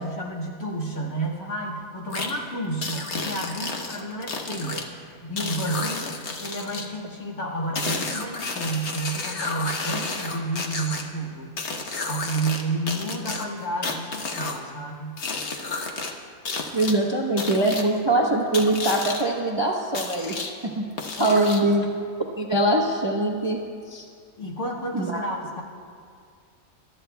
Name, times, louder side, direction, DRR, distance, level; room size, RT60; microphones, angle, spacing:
voice 1, 0.0-11.5 12.1-15.2 21.2-21.7 24.4-25.6, right 2 dB, 85° left, -3 dB, 2.3 m, -31 dB
sound 1, 2.1-2.3 2.8-4.8 5.4-6.9 7.7-11.0 11.6-12.6 12.9-14.6 15.2-16.1 16.4-16.9 17.4-17.8 18.5-19.2 19.9-20.5 21.0-21.7, left 3 dB, 55° left, 1.2 m, -31 dB
voice 2, 16.7-20.9 21.2-21.9 22.4-23.6 23.9-24.0 24.9-25.2, right 1 dB, 20° right, -1 dB, 0.8 m, -23 dB
27.0 x 12.5 x 2.3 m, 2.1 s
omnidirectional pair, 1.5 m